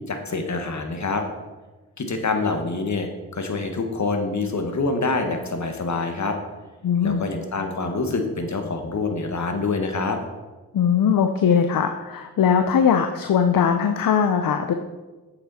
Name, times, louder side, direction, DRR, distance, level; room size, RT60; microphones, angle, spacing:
voice 1, 0.1-1.2 2.0-6.4 7.0-10.2, left 3 dB, 50° left, 5 dB, 1.5 m, -26 dB
voice 2, 6.8-7.2 10.7-14.7, left 7 dB, 65° left, 7 dB, 0.7 m, -20 dB
8.4 x 6.7 x 4.2 m, 1.2 s
cardioid pair, 50°, 36 cm